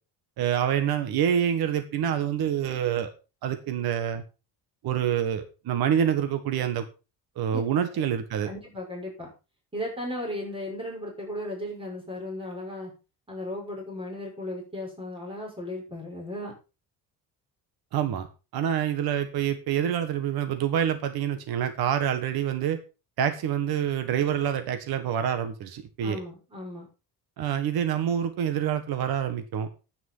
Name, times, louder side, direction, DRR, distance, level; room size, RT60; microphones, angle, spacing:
voice 1, 0.4-3.1 3.4-4.2 4.8-6.8 7.3-8.5 17.9-18.3 18.5-22.8 23.2-26.2 27.4-29.7, right 9 dB, 65° right, 9 dB, 1.6 m, -26 dB
voice 2, 8.4-9.3 9.7-12.9 13.3-16.5 26.0-26.9, left 1 dB, 15° right, -1 dB, 6.1 m, -36 dB
9.9 x 9.4 x 5.5 m, 0.31 s
cardioid pair, 160°, 39 cm